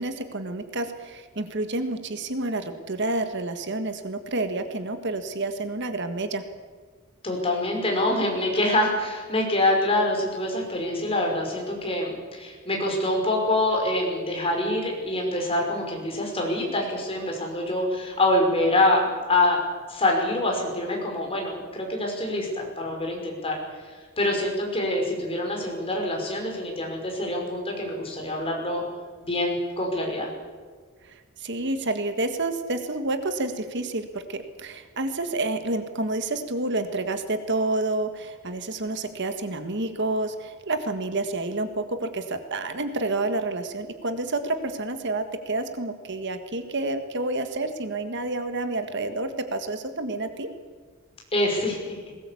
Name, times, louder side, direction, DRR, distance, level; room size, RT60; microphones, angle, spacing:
voice 1, 0.0-6.4 31.0-50.5, right 2 dB, 55° right, 8 dB, 1.6 m, -29 dB
voice 2, 7.2-19.6 19.9-23.5 24.2-28.8 29.2-30.3 51.3-52.0, left 1 dB, 25° left, 0 dB, 5.7 m, -25 dB
20.5 x 18.5 x 8.5 m, 1.6 s
head